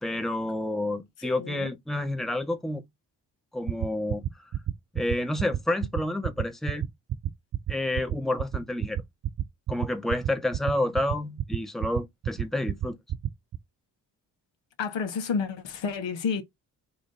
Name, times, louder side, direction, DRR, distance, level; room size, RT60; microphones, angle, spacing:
voice 1, 0.0-2.8 3.5-4.2 4.9-6.9 7.7-9.0 9.7-13.0, left 1 dB, ahead, 1.0 m, -29 dB
voice 2, 1.2-1.7 14.8-16.4, left 5 dB, 65° left, 1.4 m, -30 dB
sound 1, 3.7-13.6, right 11 dB, 45° right, 0.6 m, -29 dB
4.4 x 2.5 x 3.8 m
hypercardioid pair, 40°, 47 cm